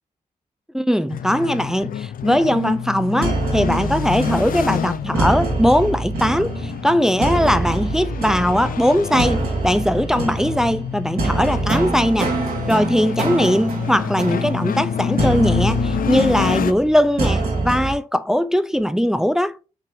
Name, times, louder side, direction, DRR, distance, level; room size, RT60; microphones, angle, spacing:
voice 1, 0.7-12.4 12.7-19.6, equal, 5° right, 0.4 m, -20 dB
sound 1, 1.1-16.7, left 8 dB, 70° left, 0.4 m, -28 dB
sound 2, 3.2-17.9, right 3 dB, 85° right, 2.2 m, -25 dB
5.8 x 3.4 x 2.7 m
cardioid pair, 55°, 15 cm